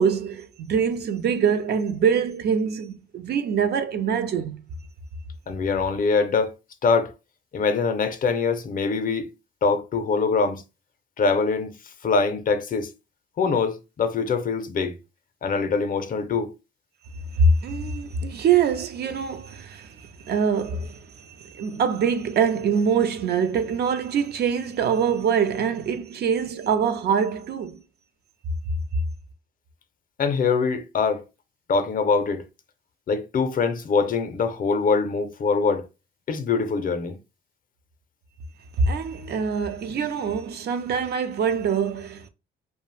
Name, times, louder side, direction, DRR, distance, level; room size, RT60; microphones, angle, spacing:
voice 1, 0.0-4.6 17.3-27.8 38.8-42.3, right 6 dB, 55° right, 0.4 m, -24 dB
voice 2, 5.5-6.6 6.8-7.1 7.5-9.3 9.6-10.6 11.2-11.7 12.0-12.9 13.4-14.9 15.4-16.5 30.2-31.2 31.7-32.4 33.1-35.9 36.3-37.2, left 4 dB, 45° left, 0.5 m, -23 dB
2.3 x 2.1 x 3.1 m
cardioid pair, 90°, 20 cm